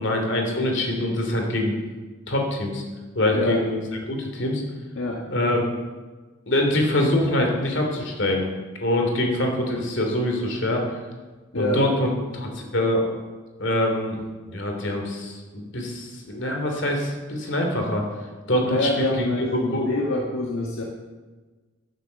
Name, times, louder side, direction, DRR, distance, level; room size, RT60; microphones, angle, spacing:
voice 1, 0.0-1.7 2.3-2.8 3.1-4.6 5.3-5.6 6.5-8.5 8.8-10.8 11.6-13.0 13.6-14.2 14.5-18.0 18.5-19.2 19.6-19.9, left 1 dB, 55° left, 2 dB, 3.0 m, -24 dB
voice 2, 3.3-3.6 4.9-5.3 11.5-11.8 18.6-20.8, left 1 dB, 70° left, -1 dB, 1.6 m, -26 dB
11.5 x 11.0 x 6.9 m, 1.3 s
head